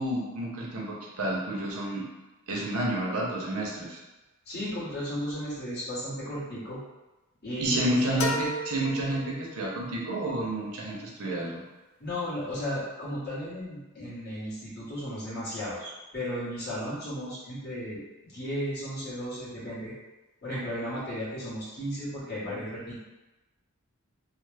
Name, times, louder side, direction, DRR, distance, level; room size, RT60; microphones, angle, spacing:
voice 1, 0.0-2.0 2.5-4.0 7.6-11.6, right 1 dB, 80° right, -3 dB, 0.8 m, -30 dB
voice 2, 4.4-6.8 7.4-8.3 12.0-18.0 18.3-19.9 20.4-23.0, equal, 50° left, -11 dB, 1.4 m, -35 dB
sound 1, 8.2-10.0, left 1 dB, 65° left, 0.4 m, -34 dB
3.2 x 2.1 x 3.3 m, 1.1 s
head